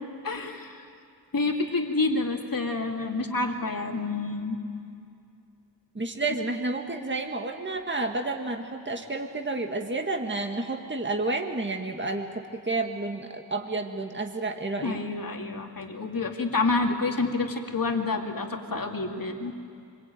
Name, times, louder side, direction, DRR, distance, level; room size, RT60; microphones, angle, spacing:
voice 1, 0.2-0.8 1.3-4.6 14.8-19.5, left 3 dB, 55° left, 2 dB, 2.5 m, -28 dB
voice 2, 6.0-12.3 12.5-14.9, right 2 dB, 25° right, 3 dB, 1.9 m, -30 dB
25.5 x 23.5 x 9.2 m, 2.5 s
wide cardioid pair, 70°, 41 cm